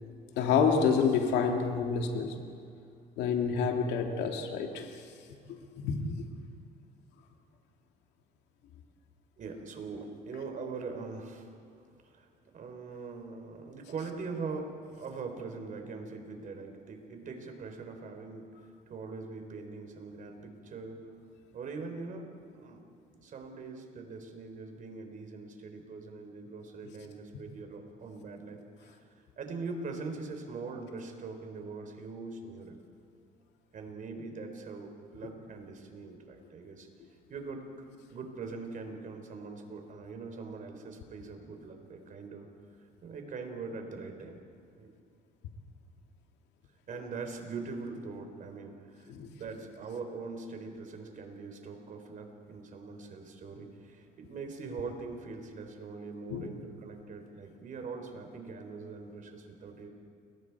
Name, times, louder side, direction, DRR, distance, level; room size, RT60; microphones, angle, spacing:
voice 1, 0.4-2.4 3.2-4.9 5.7-6.2 49.1-49.3 56.3-56.5, left 6 dB, 85° left, 3 dB, 2.4 m, -28 dB
voice 2, 9.4-11.6 12.0-12.3 12.5-21.1 21.5-22.9 23.1-29.0 29.4-32.8 33.7-36.9 37.3-42.5 43.0-44.4 44.8-44.9 46.9-49.1 49.4-59.9, right 4 dB, 50° right, 5 dB, 3.9 m, -42 dB
29.5 x 22.5 x 4.8 m, 2.4 s
cardioid pair, 110°, 17 cm